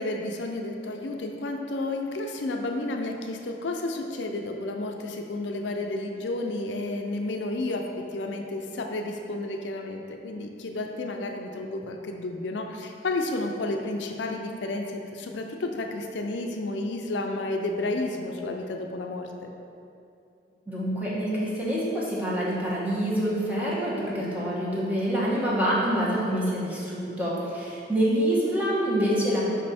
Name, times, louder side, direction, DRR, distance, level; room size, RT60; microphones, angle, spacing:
voice 1, 0.0-19.5, left 2 dB, 75° left, 3 dB, 0.5 m, -31 dB
voice 2, 20.7-29.4, equal, 10° right, -7 dB, 1.2 m, -26 dB
5.3 x 5.1 x 4.2 m, 2.5 s
head